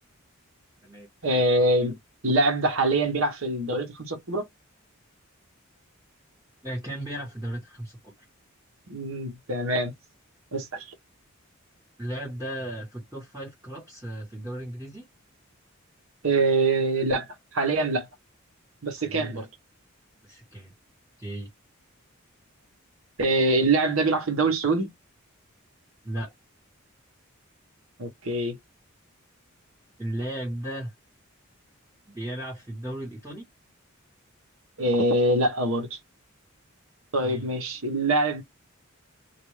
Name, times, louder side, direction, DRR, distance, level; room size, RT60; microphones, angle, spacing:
voice 1, 1.2-2.0 2.2-4.5 8.9-9.9 10.5-10.9 16.2-18.1 18.8-19.5 23.2-24.9 28.0-28.6 34.8-36.0 37.1-38.4, right 2 dB, 70° right, 1.1 m, -24 dB
voice 2, 6.6-8.1 12.0-15.1 19.0-19.5 20.2-20.7 21.2-21.5 26.0-26.3 30.0-30.9 32.1-33.5 37.2-37.5, right 1 dB, 10° right, 1.4 m, -35 dB
2.5 x 2.4 x 3.2 m
head